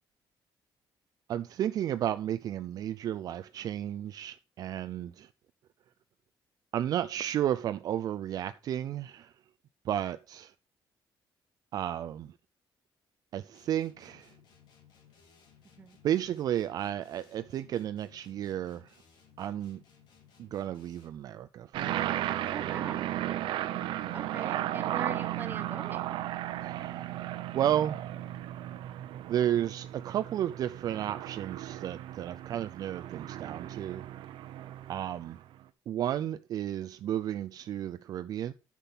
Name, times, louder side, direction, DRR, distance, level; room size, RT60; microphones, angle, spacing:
voice 1, 1.3-5.3 6.7-9.3 9.8-10.5 11.7-12.3 13.3-14.3 16.0-19.0 19.4-19.8 20.4-22.1 26.6-27.3 27.5-28.0 29.3-34.1 34.9-35.4 35.9-38.5, right 11 dB, 50° right, 0.4 m, -33 dB
sound 1, 13.5-21.3, left 7 dB, 70° left, 3.6 m, -61 dB
sound 2, 21.7-35.4, right 13 dB, 85° right, 0.8 m, -35 dB
voice 2, 22.5-23.1 24.1-26.1, right 5 dB, 25° right, 1.0 m, -41 dB
10.0 x 6.1 x 5.6 m
cardioid pair, 175°, 8 cm